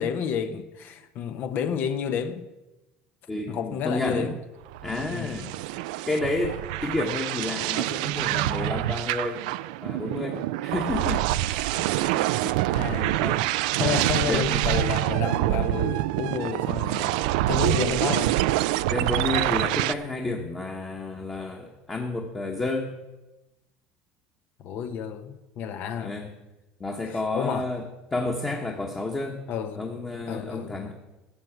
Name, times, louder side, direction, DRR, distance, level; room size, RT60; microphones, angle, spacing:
voice 1, 0.0-2.5 3.5-4.3 5.1-5.4 12.7-13.2 13.8-18.4 24.6-26.2 27.1-27.7 29.5-29.9 30.3-30.7, left 7 dB, 55° left, 0.9 m, -30 dB
voice 2, 3.3-4.3 4.8-5.7 6.0-9.5 9.8-12.8 13.2-14.5 17.1-17.3 18.9-22.9 26.0-26.3 26.8-27.8 28.1-29.4 29.8-30.9, left 2 dB, 15° left, 1.3 m, -31 dB
sound 1, 4.7-19.9, right 16 dB, 85° right, 0.4 m, -26 dB
13.0 x 7.9 x 6.0 m
cardioid pair, 130°, 4 cm